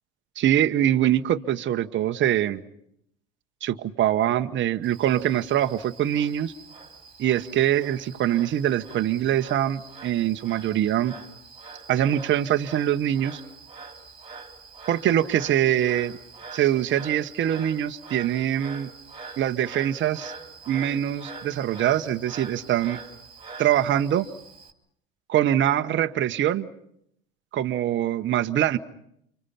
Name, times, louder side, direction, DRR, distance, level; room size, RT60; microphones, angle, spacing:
voice 1, 0.4-2.6 3.6-6.5 7.2-11.1 11.9-13.4 14.9-16.2 16.5-18.9 19.4-20.3 20.7-23.0 23.6-24.3 25.3-26.7 27.5-28.8, right 11 dB, 40° right, 7 dB, 1.1 m, -23 dB
Frog, 4.8-24.7, right 4 dB, 15° right, 2.9 m, -44 dB
29.5 x 25.5 x 5.8 m, 0.73 s
hypercardioid pair, 90°, 30 cm